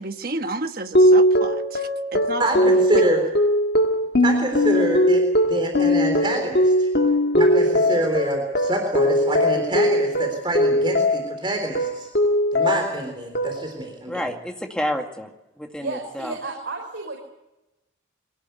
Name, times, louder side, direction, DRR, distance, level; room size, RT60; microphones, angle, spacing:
voice 1, 0.0-3.0, right 2 dB, 50° right, 7 dB, 1.4 m, -32 dB
sound 1, 1.0-11.4 11.8-13.0 13.4-13.9, equal, 60° left, 1.8 m, -20 dB
voice 2, 2.4-3.2 4.2-5.2 5.5-6.9 7.3-12.1 12.5-14.3, right 1 dB, 25° right, 3 dB, 3.8 m, -26 dB
voice 3, 14.1-15.3 15.6-16.4, equal, 5° left, 3 dB, 2.2 m, -29 dB
voice 4, 15.8-17.2, right 3 dB, 85° right, 0 dB, 5.0 m, -32 dB
23.0 x 18.5 x 8.1 m, 0.94 s
head